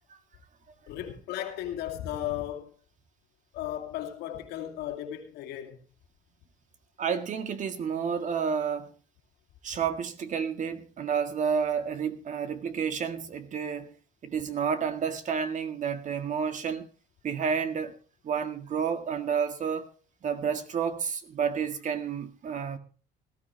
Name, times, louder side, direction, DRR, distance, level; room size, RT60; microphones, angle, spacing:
voice 1, 0.9-2.8 3.5-5.8, left 12 dB, 90° left, 2.6 m, -35 dB
voice 2, 7.0-8.9 9.6-13.9 14.2-16.9 17.2-18.0 18.2-19.9 20.2-22.8, right 7 dB, 45° right, 1.8 m, -30 dB
18.0 x 13.5 x 3.3 m
cardioid pair, 110°, 17 cm